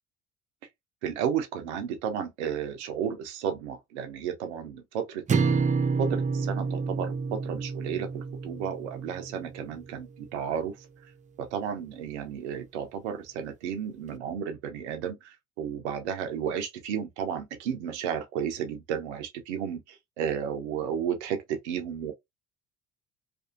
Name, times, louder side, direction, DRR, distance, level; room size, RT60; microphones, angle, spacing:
voice 1, 1.0-5.6 6.0-10.9 11.4-22.1, right 8 dB, 85° right, 0.6 m, -33 dB
sound 1, 5.3-9.6, right 4 dB, 25° right, 0.5 m, -29 dB
2.5 x 2.3 x 2.4 m
hypercardioid pair, 60°, 33 cm